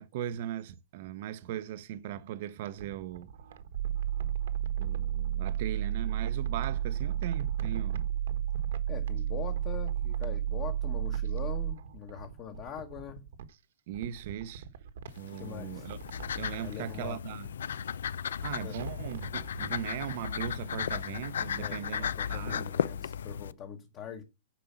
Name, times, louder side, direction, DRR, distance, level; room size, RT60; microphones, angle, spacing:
voice 1, 0.0-3.3 4.8-8.0 13.9-14.7 15.2-16.0 16.3-17.5 18.4-22.7, right 11 dB, 40° right, 0.7 m, -38 dB
sound 1, 2.5-5.6 6.1-9.3 9.5-11.4 11.7-13.6 13.9-15.4 15.8-16.8 18.7-19.7 20.1-20.2, right 6 dB, 55° right, 1.3 m, -46 dB
sound 2, 3.8-11.8, right 11 dB, 75° right, 0.5 m, -31 dB
voice 2, 8.9-13.3 15.3-15.9 16.6-17.2 18.6-18.8 21.6-24.2, left 8 dB, 20° left, 1.0 m, -43 dB
sound 3, 15.1-23.5, left 8 dB, 90° left, 0.5 m, -35 dB
10.0 x 5.1 x 7.1 m
hypercardioid pair, 175°, 0 cm